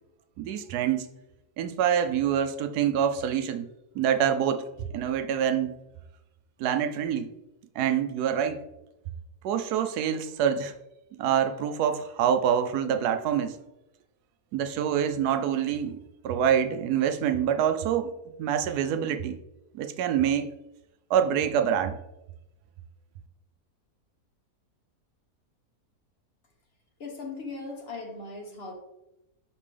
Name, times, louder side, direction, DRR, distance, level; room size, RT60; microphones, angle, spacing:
voice 1, 0.4-1.1 1.6-3.7 3.9-4.6 4.9-5.7 6.6-7.3 7.8-8.6 9.4-10.7 11.2-13.6 14.5-18.1 18.4-19.4 19.7-20.5 21.1-22.0, right 9 dB, 85° right, 9 dB, 1.1 m, -26 dB
voice 2, 27.0-28.7, left 3 dB, 45° left, 2 dB, 1.1 m, -38 dB
5.9 x 5.4 x 3.3 m, 0.92 s
omnidirectional pair, 1.6 m